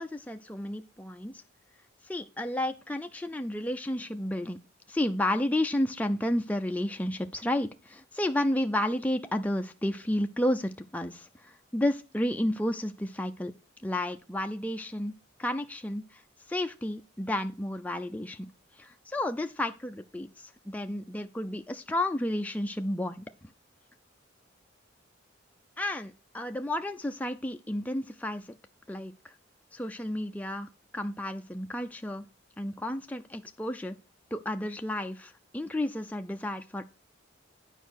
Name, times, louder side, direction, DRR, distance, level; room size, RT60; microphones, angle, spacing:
voice 1, 0.0-1.4 2.1-4.6 4.9-13.5 13.8-15.1 15.4-16.2 16.5-18.5 18.8-23.3 25.8-28.5 28.9-29.3 29.7-32.2 32.6-34.0 34.3-36.8, left 1 dB, 10° left, 5 dB, 0.5 m, -32 dB
9.3 x 5.0 x 6.4 m, 0.30 s
head